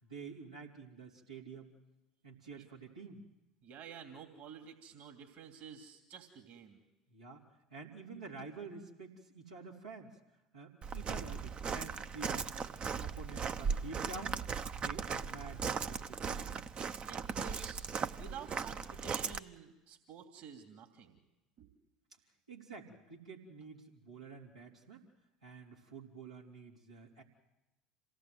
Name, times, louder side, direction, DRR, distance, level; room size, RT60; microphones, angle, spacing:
voice 1, 0.0-1.7 2.2-3.2 7.1-7.4 7.7-10.1 10.5-12.5 13.0-16.6 22.5-25.0 25.4-27.2, right 4 dB, 90° right, -4 dB, 3.7 m, -49 dB
voice 2, 3.6-6.8 17.0-21.2 21.6-21.7, right 7 dB, 55° right, 4 dB, 2.9 m, -51 dB
Walk footsteps, 10.8-19.4, right 6 dB, 35° right, 0.9 m, -38 dB
27.0 x 18.0 x 8.0 m, 0.97 s
figure-of-eight pair, 70°, 3 cm